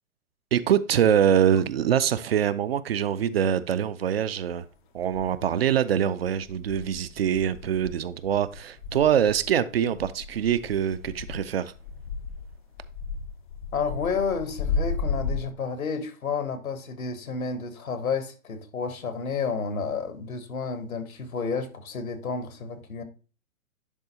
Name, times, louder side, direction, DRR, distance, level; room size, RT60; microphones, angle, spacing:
voice 1, 0.5-4.7 4.9-11.7, right 9 dB, 50° right, 0.4 m, -24 dB
sound 1, 4.5-4.6 5.1-5.8 6.2-15.5, left 4 dB, 40° left, 0.4 m, -34 dB
voice 2, 13.7-23.0, left 5 dB, 75° left, 1.3 m, -31 dB
10.5 x 3.9 x 2.8 m
figure-of-eight pair, 120°, 42 cm